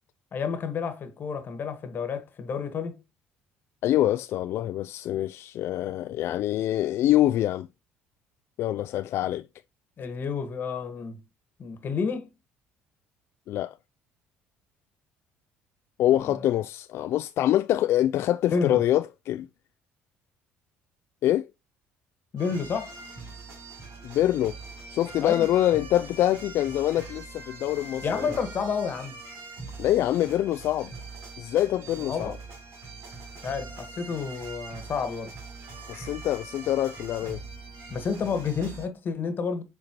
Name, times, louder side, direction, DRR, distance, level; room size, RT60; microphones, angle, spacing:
voice 1, 0.3-3.0 10.0-11.2 11.6-12.3 16.2-16.5 18.5-18.8 22.3-22.9 25.2-25.5 28.0-29.2 32.0-32.3 33.4-35.3 37.9-39.6, left 5 dB, 45° left, 1.5 m, -30 dB
voice 2, 3.8-7.7 8.6-9.5 13.5-13.7 16.0-19.5 21.2-21.5 24.0-24.6 24.9-28.4 29.8-30.9 31.4-32.4 35.9-37.4, left 13 dB, 65° left, 0.3 m, -25 dB
sound 1, 22.4-38.9, right 3 dB, 70° right, 3.0 m, -43 dB
7.4 x 4.4 x 3.0 m
supercardioid pair, 90°, 5 cm